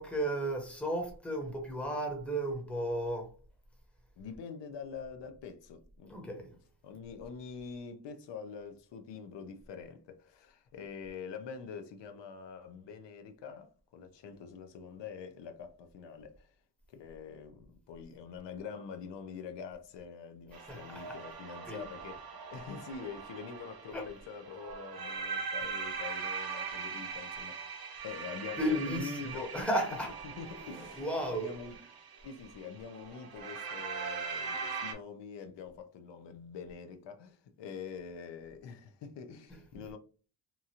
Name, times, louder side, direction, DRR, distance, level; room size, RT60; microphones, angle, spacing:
voice 1, 0.0-3.3 6.1-6.5 20.5-21.2 21.7-21.9 23.9-24.0 28.6-30.2 30.6-31.6 39.5-39.8, right 1 dB, 5° left, 0.7 m, -34 dB
voice 2, 4.2-6.5 6.8-16.5 16.9-22.2 22.5-29.5 30.4-31.8 32.2-40.0, left 6 dB, 85° left, 0.6 m, -45 dB
sound 1, 20.5-34.9, right 5 dB, 60° right, 0.7 m, -41 dB
2.9 x 2.4 x 2.7 m
wide cardioid pair, 155°, 41 cm